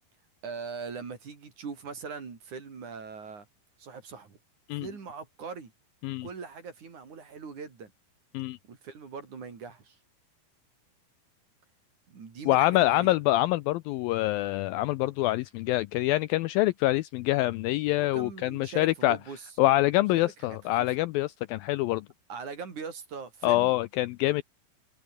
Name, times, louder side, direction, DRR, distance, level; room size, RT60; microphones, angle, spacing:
voice 1, 0.4-3.5 3.8-4.4 4.8-5.7 6.2-7.9 8.7-10.0 12.1-13.2 17.9-19.5 20.1-20.9 22.3-23.8, right 5 dB, 50° right, 5.2 m, -41 dB
voice 2, 12.5-19.2 19.6-22.1 23.4-24.4, left 17 dB, 85° left, 2.1 m, -25 dB
omnidirectional pair, 4.7 m